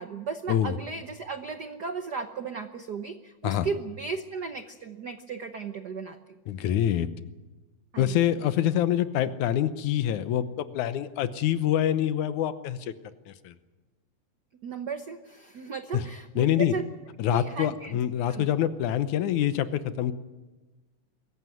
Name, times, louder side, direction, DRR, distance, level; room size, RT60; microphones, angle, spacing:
voice 1, 0.0-6.2 7.9-8.2 14.6-16.8 17.3-18.0 18.3-18.5, right 5 dB, 80° right, 8 dB, 0.9 m, -35 dB
voice 2, 6.5-7.1 8.0-12.9 13.3-13.5 15.9-16.0 16.4-16.7 17.2-20.1, left 11 dB, 80° left, 12 dB, 2.3 m, -26 dB
24.0 x 15.0 x 9.4 m, 1.2 s
omnidirectional pair, 3.4 m